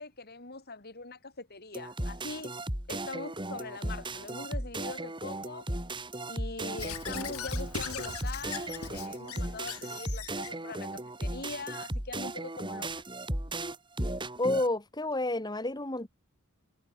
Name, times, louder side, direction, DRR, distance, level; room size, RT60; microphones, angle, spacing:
voice 1, 0.0-2.5 2.9-5.7 6.2-13.0, left 3 dB, 45° left, 3.6 m, -42 dB
sound 1, 1.7-14.7, right 1 dB, 20° right, 5.0 m, -36 dB
Squeak / Writing, 6.8-10.5, left 7 dB, 85° left, 2.1 m, -40 dB
voice 2, 14.4-16.1, left 2 dB, 20° left, 2.1 m, -30 dB
head